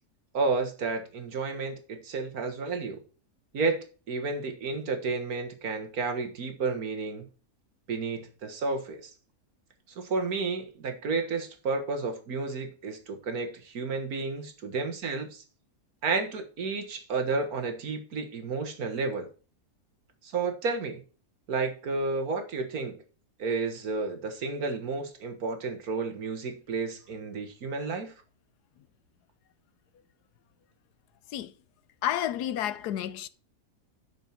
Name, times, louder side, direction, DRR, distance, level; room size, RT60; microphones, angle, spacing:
voice 1, 0.3-3.0 3.5-7.3 7.9-9.1 10.0-15.4 16.0-19.3 20.2-21.0 21.5-23.0 23.4-28.1, right 4 dB, 70° right, 1.8 m, -31 dB
voice 2, 32.0-33.3, left 11 dB, 90° left, 1.3 m, -30 dB
8.9 x 6.4 x 4.3 m
omnidirectional pair, 1.7 m